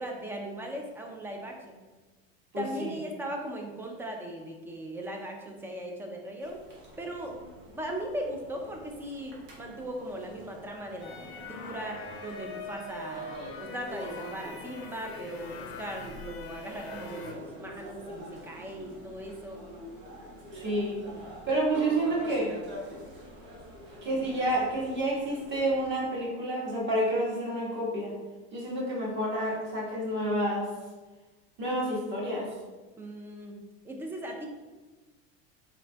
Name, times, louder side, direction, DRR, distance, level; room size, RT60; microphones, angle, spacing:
voice 1, 0.0-1.7 2.6-6.6 7.0-7.4 7.7-13.3 13.6-19.6 24.2-24.3 33.0-34.5, right 1 dB, 5° right, 1 dB, 0.3 m, -38 dB
voice 2, 2.5-2.9 20.5-21.0 21.5-22.5 24.0-28.1 28.5-30.7 31.6-32.5, right 1 dB, 35° right, -4 dB, 1.4 m, -29 dB
sound 1, 6.4-25.9, equal, 80° right, 1.3 m, -46 dB
sound 2, 11.0-17.3, left 3 dB, 40° left, 0.6 m, -43 dB
4.1 x 3.7 x 2.2 m, 1.2 s
supercardioid pair, 130°, 33 cm